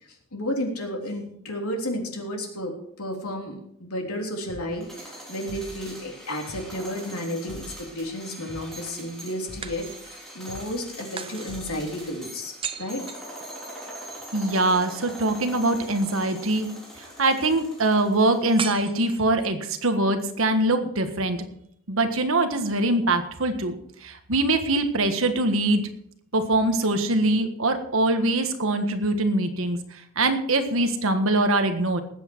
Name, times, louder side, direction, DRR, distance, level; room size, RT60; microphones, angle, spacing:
voice 1, 0.3-13.0, left 1 dB, 90° left, 1 dB, 3.4 m, -32 dB
sound 1, 4.5-4.7 5.0-6.0 6.5-6.7 7.0-8.1 8.5-8.7 9.0-10.0 10.5-10.7 11.0-12.1, equal, 45° right, 3.8 m, -45 dB
sound 2, 4.7-18.8, right 1 dB, ahead, 3.5 m, -42 dB
sound 3, 6.5-7.6 9.6-10.4 11.2-14.0 18.6-19.7, right 6 dB, 25° right, 0.7 m, -38 dB
voice 2, 14.3-16.7 17.0-21.4 21.9-25.8 26.3-32.0, right 2 dB, 65° right, 7 dB, 1.5 m, -23 dB
19.5 x 8.4 x 4.6 m, 0.71 s
head